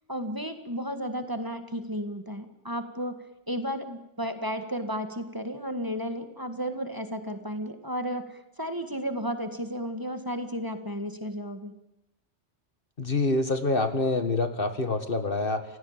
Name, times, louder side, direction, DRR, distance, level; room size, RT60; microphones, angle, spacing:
voice 1, 0.1-3.2 3.5-11.7, equal, 20° right, 7 dB, 1.8 m, -33 dB
voice 2, 13.0-15.6, left 2 dB, 50° left, 8 dB, 1.9 m, -26 dB
29.0 x 16.5 x 8.9 m, 0.91 s
omnidirectional pair, 1.2 m